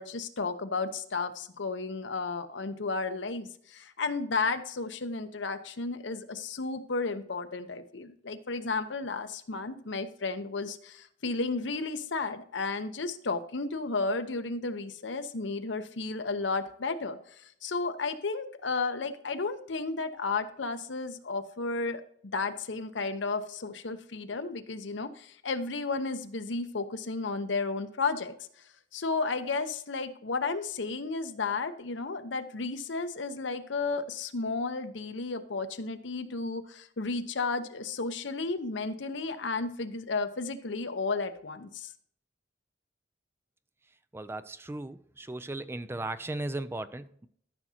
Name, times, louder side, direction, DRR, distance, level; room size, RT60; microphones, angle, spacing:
voice 1, 0.0-22.0 22.3-28.3 28.9-41.9, left 3 dB, 75° left, 0.8 m, -33 dB
voice 2, 44.1-47.3, right 2 dB, 10° right, 0.3 m, -37 dB
13.5 x 6.2 x 2.8 m
head